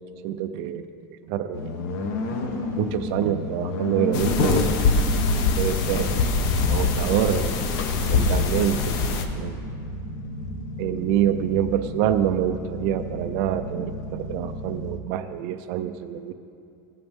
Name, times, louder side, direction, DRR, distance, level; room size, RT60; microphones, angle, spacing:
voice 1, 0.2-0.9 1.3-1.7 2.8-4.7 5.6-6.2 6.7-7.6 8.1-9.0 9.3-9.6 10.8-16.3, right 10 dB, 40° right, 9 dB, 0.4 m, -26 dB
sound 1, 1.5-15.0, left 2 dB, 50° left, 1.0 m, -33 dB
sound 2, 4.1-9.3, left 4 dB, 35° left, 0.7 m, -23 dB
17.0 x 7.8 x 3.6 m, 2.5 s
supercardioid pair, 175°, 11 cm